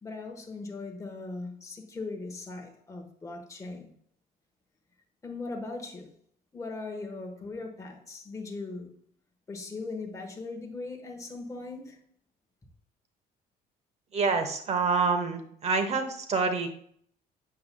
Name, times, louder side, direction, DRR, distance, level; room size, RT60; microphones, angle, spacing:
voice 1, 0.0-3.9 5.2-6.1 6.5-9.0 9.5-12.1, left 3 dB, 20° left, 1.2 m, -39 dB
voice 2, 14.1-16.7, right 4 dB, 40° right, 1.0 m, -27 dB
7.6 x 5.6 x 2.2 m
cardioid pair, 110°, 17 cm